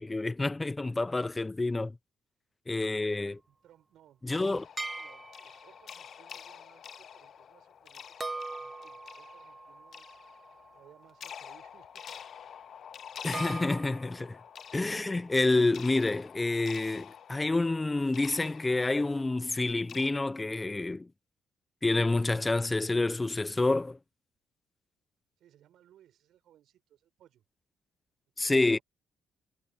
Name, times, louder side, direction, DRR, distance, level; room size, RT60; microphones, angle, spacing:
voice 1, 0.0-1.9 2.7-3.4 4.2-4.6 13.2-14.4 14.7-21.1 21.8-24.0 28.4-28.8, left 2 dB, 20° left, 0.7 m, -28 dB
voice 2, 3.5-10.2 10.7-12.5 25.4-27.4 28.4-28.8, right 11 dB, 75° right, 6.8 m, -62 dB
sound 1, 4.3-20.1, left 8 dB, 60° left, 0.7 m, -47 dB
sound 2, 4.8-5.8 8.2-11.3 13.3-14.3, right 3 dB, 25° right, 1.0 m, -41 dB
cardioid pair, 90°, 0 cm